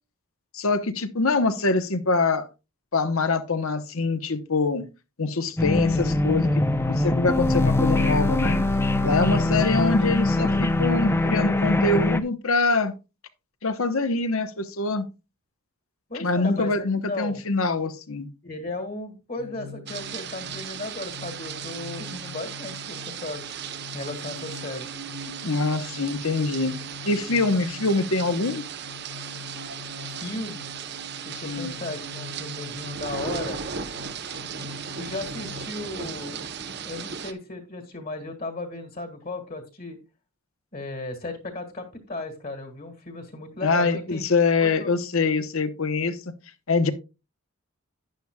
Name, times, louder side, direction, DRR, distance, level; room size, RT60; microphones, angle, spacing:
voice 1, 0.5-2.5 2.9-4.8 5.2-8.6 9.0-12.9 13.6-15.1 16.2-18.3 25.3-26.7 27.0-28.6 31.4-31.8 43.6-46.2 46.7-46.9, left 3 dB, 70° left, 1.0 m, -24 dB
sound 1, 5.6-12.2, left 2 dB, 10° left, 0.5 m, -22 dB
voice 2, 16.1-17.4 18.4-23.4 23.9-24.9 30.2-30.7 31.2-33.6 35.0-36.4 36.8-40.0 40.7-44.2 44.6-44.9, left 2 dB, 40° left, 1.7 m, -35 dB
sound 2, 19.4-35.7, left 2 dB, 80° right, 2.3 m, -43 dB
sound 3, 19.9-37.3, right 7 dB, 50° right, 0.8 m, -36 dB
11.5 x 9.6 x 2.3 m
head